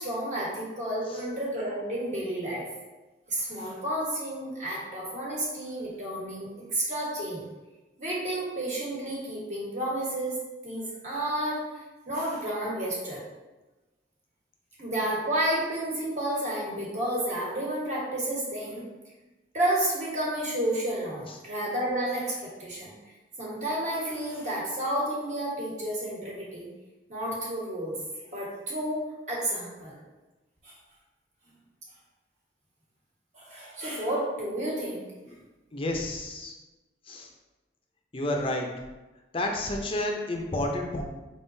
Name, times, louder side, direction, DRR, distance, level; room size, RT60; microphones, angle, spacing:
voice 1, 0.0-2.7 3.3-7.4 8.0-10.4 10.6-11.6 12.1-13.2 14.8-18.8 19.5-22.9 23.4-26.6 27.1-27.9 28.3-29.0 29.3-30.0 30.6-30.7 33.3-35.0, right 1 dB, 45° right, -5 dB, 1.4 m, -31 dB
voice 2, 35.7-36.5 37.1-37.3 38.1-38.7 39.3-41.0, left 1 dB, 30° left, 2 dB, 0.5 m, -30 dB
4.9 x 3.6 x 2.6 m, 1.1 s
head